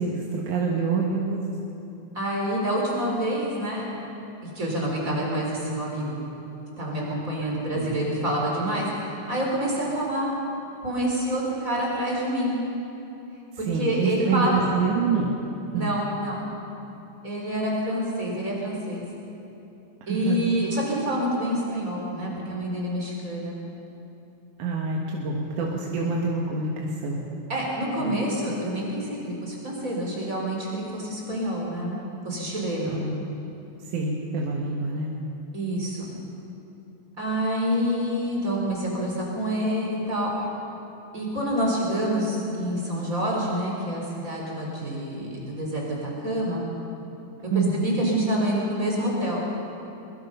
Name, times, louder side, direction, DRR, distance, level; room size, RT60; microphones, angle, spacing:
voice 1, 0.0-1.4 7.7-8.0 13.7-15.4 15.7-15.9 20.1-20.5 24.6-27.2 28.0-28.2 32.9-33.2 33.9-35.1 47.5-47.8, right 4 dB, 80° right, -2 dB, 3.0 m, -26 dB
voice 2, 2.1-3.8 4.4-6.1 6.8-10.3 10.8-12.6 13.6-14.7 15.7-16.4 17.2-19.0 20.1-23.6 27.5-32.0 32.2-33.0 35.5-36.1 37.2-40.5 41.1-46.6 47.5-49.4, equal, 25° right, -3 dB, 4.7 m, -27 dB
22.0 x 21.5 x 5.6 m, 2.9 s
omnidirectional pair, 3.5 m